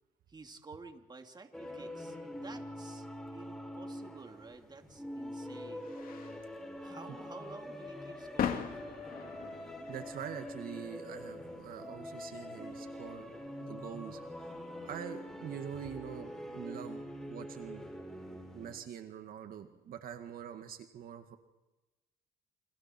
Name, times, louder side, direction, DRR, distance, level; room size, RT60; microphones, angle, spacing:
voice 1, 0.3-3.1 3.3-6.0 6.8-9.1, right 3 dB, 25° right, 5 dB, 2.7 m, -52 dB
sound 1, 1.5-18.8, left 1 dB, 5° left, 6.9 m, -44 dB
sound 2, 4.5-15.8, left 8 dB, 65° left, 2.9 m, -44 dB
voice 2, 9.9-13.3 13.6-14.5 14.8-17.0 17.3-17.9 18.5-21.4, right 9 dB, 65° right, 7 dB, 2.1 m, -44 dB
30.0 x 26.0 x 4.6 m, 1.0 s
cardioid pair, 85°, 16 cm